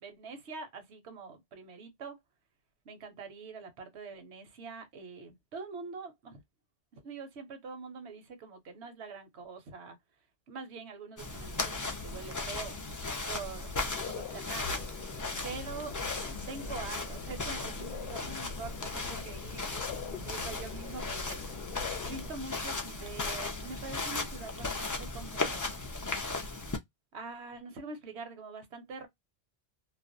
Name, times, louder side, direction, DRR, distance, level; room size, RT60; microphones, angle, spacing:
voice 1, 0.0-2.2 2.8-6.4 6.9-10.0 10.5-12.8 13.3-14.9 15.4-16.0 16.5-19.6 19.9-21.4 22.0-25.7 27.1-29.1, right 4 dB, 80° right, 1.0 m, -44 dB
sound 1, 11.2-26.8, left 3 dB, 30° left, 0.3 m, -37 dB
sound 2, 13.6-22.3, left 7 dB, 70° left, 0.8 m, -44 dB
2.5 x 2.1 x 2.5 m
omnidirectional pair, 1.1 m